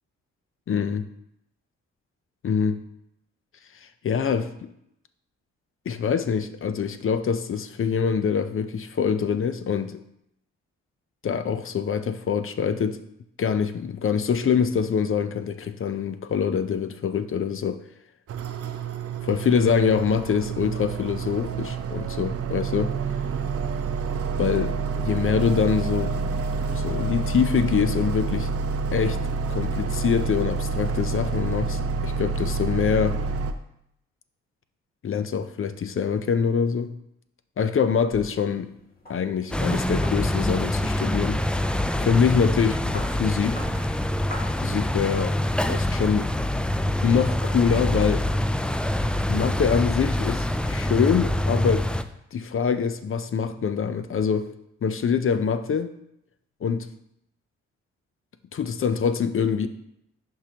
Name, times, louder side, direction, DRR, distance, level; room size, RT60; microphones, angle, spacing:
voice 1, 0.7-1.1 2.4-2.8 4.0-4.7 5.9-10.0 11.2-13.0 13.4-17.8 19.2-22.9 24.4-26.4 26.7-28.5 28.9-29.2 29.5-33.2 35.0-36.9 37.6-38.7 39.1-41.4 42.0-43.6 44.6-46.3 47.0-48.2 49.3-51.9 52.3-54.5 54.8-55.9 56.6-56.9 58.5-59.7, left 6 dB, 45° left, 10 dB, 0.6 m, -24 dB
sound 1, 18.3-33.5, right 4 dB, 55° right, 0.6 m, -28 dB
sound 2, 37.7-45.2, left 1 dB, 30° left, 1.7 m, -46 dB
sound 3, 39.5-52.0, left 1 dB, 5° left, 0.4 m, -25 dB
11.0 x 3.7 x 2.9 m, 0.76 s
supercardioid pair, 60°, 29 cm